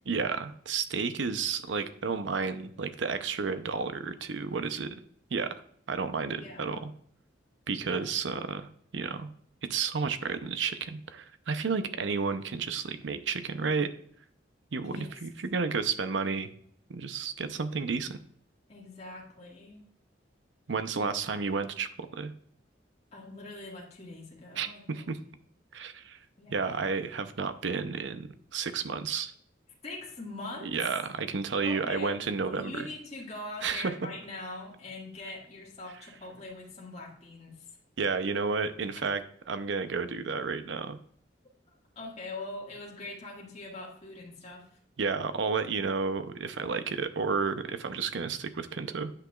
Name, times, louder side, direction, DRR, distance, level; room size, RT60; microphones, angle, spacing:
voice 1, 0.1-4.9 5.3-5.5 5.9-6.9 7.7-9.3 9.7-13.9 14.7-16.5 16.9-18.2 20.7-22.3 24.6-25.2 25.7-26.2 26.5-29.3 30.7-32.9 33.6-33.9 38.0-39.2 39.5-41.0 45.0-49.1, right 5 dB, 80° right, 10 dB, 0.7 m, -31 dB
voice 2, 6.4-6.8 7.8-8.0 14.8-15.1 18.7-19.8 23.1-25.1 26.4-26.8 29.8-30.7 31.6-37.6 42.0-44.7, left 2 dB, 35° left, -4 dB, 1.9 m, -42 dB
9.8 x 6.0 x 2.4 m, 0.62 s
head